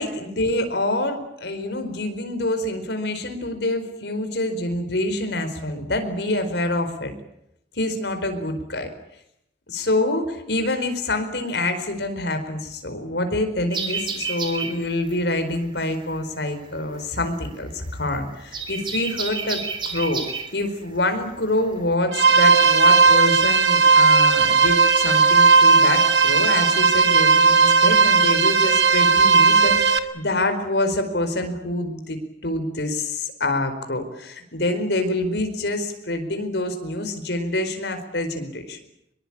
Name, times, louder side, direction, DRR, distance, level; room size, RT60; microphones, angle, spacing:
voice 1, 0.0-7.1 7.7-8.9 9.7-20.2 20.5-38.8, left 1 dB, 70° left, 7 dB, 4.7 m, -26 dB
sound 1, 13.7-21.9, right 5 dB, 25° right, 3.6 m, -32 dB
sound 2, 22.1-30.0, right 4 dB, 75° right, 2.0 m, -16 dB
25.0 x 22.5 x 8.8 m, 0.78 s
head